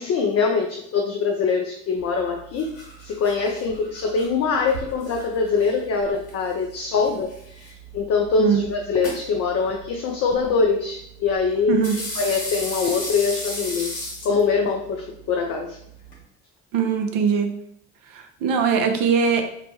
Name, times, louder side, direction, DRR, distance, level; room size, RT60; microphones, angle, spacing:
voice 1, 0.0-2.7 3.0-11.8 12.2-15.8, left 5 dB, 40° left, 2 dB, 0.4 m, -23 dB
sound 1, 2.0-16.2, equal, 65° left, 1.5 m, -37 dB
voice 2, 16.7-17.5 18.1-19.4, right 6 dB, 60° right, 5 dB, 0.6 m, -21 dB
3.1 x 2.1 x 2.8 m, 0.73 s
hypercardioid pair, 50°, 38 cm